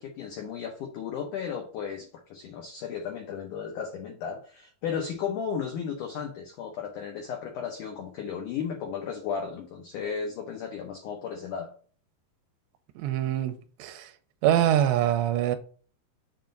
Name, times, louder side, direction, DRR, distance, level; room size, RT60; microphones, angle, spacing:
voice 1, 0.0-11.7, left 7 dB, 90° left, 1.7 m, -34 dB
voice 2, 13.0-14.1 14.4-15.6, right 11 dB, 90° right, 2.9 m, -24 dB
7.4 x 2.6 x 5.2 m
omnidirectional pair, 4.9 m